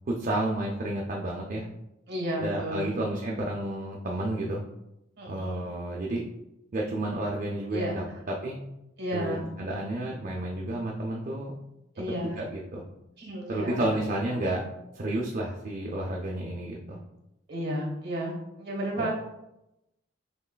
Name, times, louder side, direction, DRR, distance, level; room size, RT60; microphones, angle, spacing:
voice 1, 0.1-1.7 2.4-4.6 5.3-6.2 6.7-8.6 9.1-11.5 12.2-12.8 13.5-14.6 14.9-17.0 19.0-19.1, right 1 dB, 40° right, -2 dB, 0.5 m, -31 dB
voice 2, 2.1-2.9 5.2-5.7 7.7-8.2 9.0-9.5 11.9-12.5 13.2-13.8 14.1-14.3 17.5-19.1, equal, 55° right, -1 dB, 1.4 m, -33 dB
6.1 x 3.1 x 2.2 m, 0.89 s
head